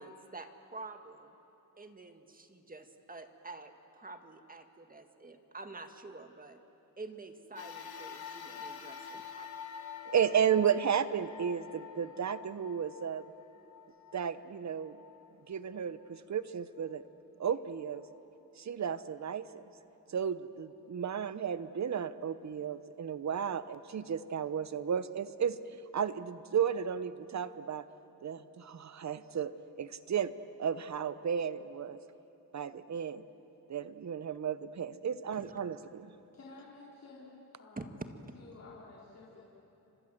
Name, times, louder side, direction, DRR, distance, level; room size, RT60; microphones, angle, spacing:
voice 1, 0.0-1.3 1.8-6.6 7.0-9.5 35.3-35.7 37.8-37.9, right 3 dB, 25° right, 7 dB, 1.8 m, -48 dB
sound 1, 7.6-16.2 16.8-16.9 18.0-18.1, left 7 dB, 80° left, 3.0 m, -47 dB
voice 2, 10.1-13.2 14.1-15.0 15.5-17.0 17.4-18.0 18.6-19.6 20.1-25.6 25.9-27.9 28.2-29.5 29.8-30.3 30.6-32.0 32.5-33.2 33.7-36.1, right 8 dB, 50° right, 14 dB, 1.0 m, -33 dB
voice 3, 36.3-38.0 38.3-39.4, left 3 dB, 45° left, -6 dB, 4.4 m, -52 dB
29.5 x 25.5 x 7.8 m, 3.0 s
cardioid pair, 100°, 36 cm